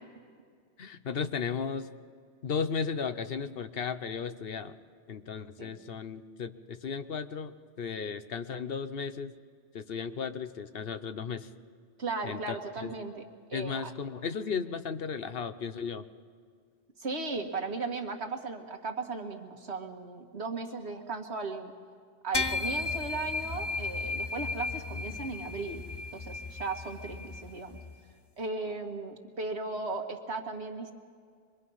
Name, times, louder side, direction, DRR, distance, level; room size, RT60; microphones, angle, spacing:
voice 1, 0.8-1.9 2.4-4.7 5.1-9.3 9.7-11.5 12.2-12.6 12.8-12.9 13.5-16.0, left 6 dB, 60° left, 11 dB, 1.0 m, -35 dB
voice 2, 12.0-13.9 17.0-21.7 22.2-25.9 26.1-27.8 28.4-30.9, right 3 dB, 80° right, 3 dB, 2.0 m, -36 dB
sound 1, 22.3-28.0, left 3 dB, 30° left, 0.6 m, -35 dB
25.5 x 22.0 x 5.6 m, 2.1 s
omnidirectional pair, 1.1 m